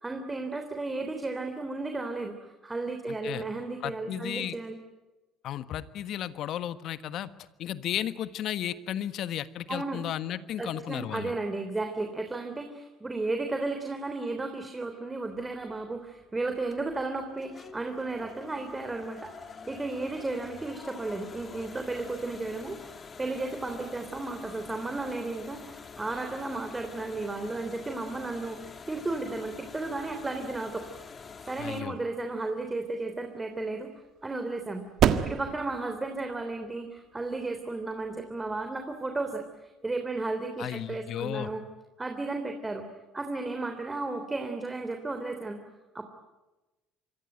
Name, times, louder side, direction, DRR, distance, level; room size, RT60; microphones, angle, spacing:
voice 1, 0.0-4.8 9.7-10.0 10.6-30.8 31.5-33.9 34.2-34.9 35.2-41.6 42.0-42.8 43.1-45.6 45.9-46.1, right 2 dB, 20° right, 6 dB, 3.3 m, -34 dB
voice 2, 3.1-3.4 3.8-4.6 5.4-7.3 7.6-11.3 31.6-32.0 40.6-41.5, left 11 dB, 60° left, 13 dB, 1.4 m, -34 dB
sound 1, 15.2-31.8, left 5 dB, 35° left, 2.9 m, -47 dB
sound 2, 32.4-39.7, right 10 dB, 60° right, 1.6 m, -33 dB
27.0 x 23.5 x 9.2 m, 1.1 s
hypercardioid pair, 65°, 0 cm